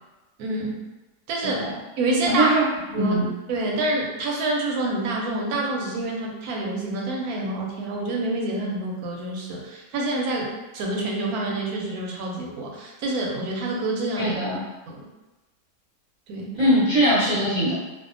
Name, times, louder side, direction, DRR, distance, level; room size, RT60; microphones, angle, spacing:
voice 1, 0.4-0.8 1.3-1.6 2.0-2.5 2.9-3.2 3.5-10.5 10.7-14.4 14.9-15.0 16.3-16.5, right 2 dB, 70° right, -1 dB, 1.0 m, -27 dB
voice 2, 1.4-1.7 2.2-2.6 2.9-3.3 14.2-14.6 16.6-17.7, equal, 35° right, -12 dB, 0.7 m, -21 dB
2.6 x 2.3 x 2.5 m, 1.1 s
omnidirectional pair, 1.8 m